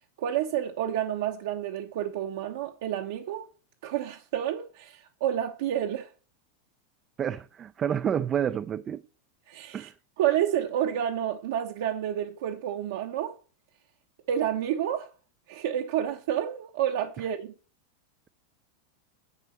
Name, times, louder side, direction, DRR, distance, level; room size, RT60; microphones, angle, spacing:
voice 1, 0.2-3.5 3.8-6.1 9.5-9.9 10.2-13.4 14.3-15.1 15.5-17.5, right 10 dB, 70° right, 1.1 m, -29 dB
voice 2, 7.2-9.0 9.7-9.9 17.2-17.3, right 9 dB, 25° right, 0.4 m, -29 dB
11.0 x 4.1 x 7.3 m
supercardioid pair, 150°, 0 cm